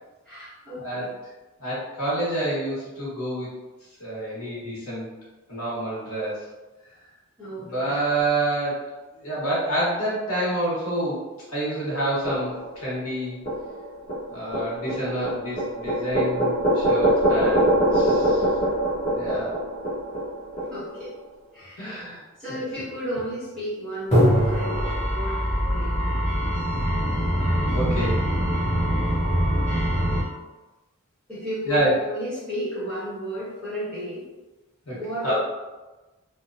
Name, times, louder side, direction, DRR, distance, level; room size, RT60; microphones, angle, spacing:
voice 1, 0.3-1.1 7.4-8.0 20.7-21.1 21.5-22.0 22.4-26.2 31.3-34.2 34.9-35.3, equal, 5° left, -13 dB, 1.1 m, -33 dB
voice 2, 1.6-3.5 4.0-5.1 5.5-6.4 7.6-8.8 9.1-13.4 14.3-18.4 19.1-19.6 21.8-22.2 22.5-22.6 27.7-28.2 31.7-31.9 34.9-35.3, right 1 dB, 90° left, -7 dB, 1.2 m, -28 dB
sound 1, 12.3-12.9 13.5-20.9 24.1-30.2, equal, 30° left, 0.9 m, -23 dB
2.8 x 2.2 x 2.5 m, 1.2 s
head